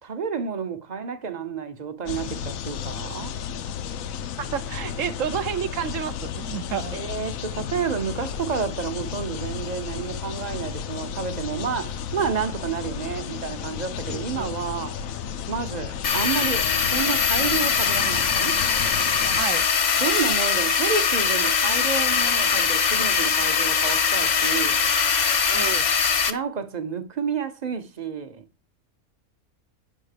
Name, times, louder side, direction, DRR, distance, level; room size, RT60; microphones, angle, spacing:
voice 1, 0.0-3.3 6.9-15.0 15.5-18.6 19.9-24.8 26.3-28.4, right 6 dB, 40° right, 0.8 m, -30 dB
sound 1, 2.1-19.4, left 8 dB, 80° left, 1.1 m, -33 dB
voice 2, 4.4-7.0 14.1-14.5 19.4-19.7 25.5-25.9, right 9 dB, 70° right, 1.0 m, -30 dB
sound 2, 16.0-26.3, left 6 dB, 45° left, 0.6 m, -22 dB
8.9 x 3.6 x 6.6 m
omnidirectional pair, 1.4 m